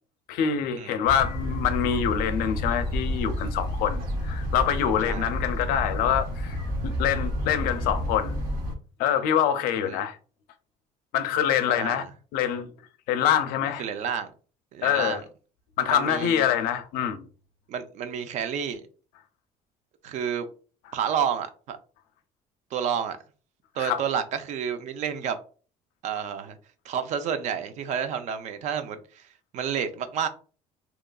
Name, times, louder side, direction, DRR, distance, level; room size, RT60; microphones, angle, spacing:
voice 1, 0.3-6.6 6.8-8.4 9.0-10.2 11.1-12.0 12.3-12.7 13.1-13.8 14.8-15.2 15.8-17.3 23.8-24.0, left 9 dB, 90° left, 0.4 m, -25 dB
sound 1, 1.0-8.7, equal, 85° right, 0.8 m, -30 dB
voice 2, 11.7-12.1 13.8-14.3 14.7-15.2 15.9-16.5 17.7-18.8 20.0-20.5 20.9-21.8 22.7-23.2 23.8-25.4 26.0-26.6 26.8-29.3 29.5-30.3, right 8 dB, 55° right, 0.4 m, -30 dB
2.8 x 2.4 x 2.2 m
cardioid pair, 150°, 15 cm